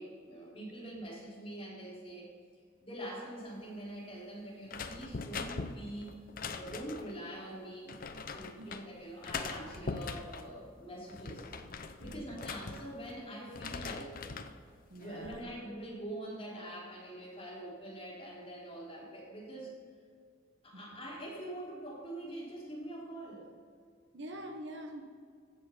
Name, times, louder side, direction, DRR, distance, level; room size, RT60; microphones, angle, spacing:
voice 1, 0.0-2.3 2.8-6.1 6.5-11.4 12.0-14.1 15.0-19.7 20.6-23.5, right 1 dB, 25° left, -5 dB, 3.4 m, -44 dB
sound 1, 4.7-7.2 7.9-8.8 9.2-10.5 11.0-13.2 13.5-14.6 15.0-15.4, left 4 dB, 45° left, 0.6 m, -41 dB
voice 2, 12.0-12.4 14.9-15.5 20.7-20.8 24.1-25.0, right 1 dB, 55° right, 4 dB, 1.1 m, -45 dB
15.5 x 6.6 x 5.7 m, 2.1 s
head